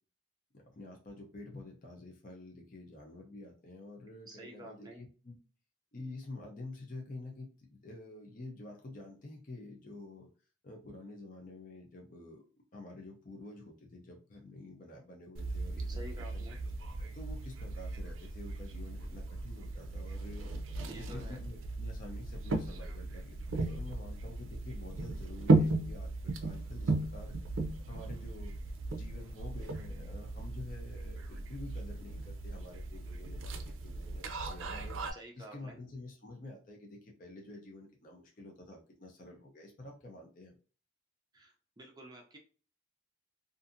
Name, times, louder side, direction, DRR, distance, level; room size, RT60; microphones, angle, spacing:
voice 1, 0.5-5.3 5.9-10.3 10.6-12.4 12.7-16.5 17.0-20.5 21.0-27.4 27.9-35.0 35.3-40.5, left 2 dB, 40° left, 0 dB, 0.6 m, -49 dB
voice 2, 4.3-5.0 15.9-16.6 20.9-21.4 35.1-35.8 41.3-42.4, right 1 dB, 20° right, 1 dB, 0.5 m, -50 dB
sound 1, 15.4-35.1, right 2 dB, 80° right, 0.5 m, -36 dB
2.6 x 2.5 x 2.5 m, 0.36 s
head